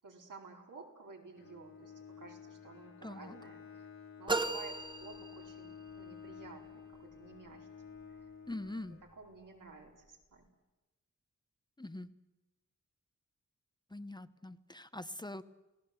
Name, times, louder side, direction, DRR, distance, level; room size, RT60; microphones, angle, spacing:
voice 1, 0.0-3.9 4.2-8.3 9.2-10.4, right 4 dB, 85° right, -1 dB, 4.7 m, -53 dB
Bowed string instrument, 1.4-9.6, left 6 dB, 65° left, 2.6 m, -52 dB
voice 2, 3.0-3.4 8.5-9.0 11.8-12.1 13.9-15.4, left 1 dB, 15° left, 11 dB, 0.8 m, -43 dB
sound 1, 4.3-6.0, right 2 dB, 15° right, 1.2 m, -36 dB
29.0 x 18.0 x 8.1 m, 1.1 s
wide cardioid pair, 100°, 30 cm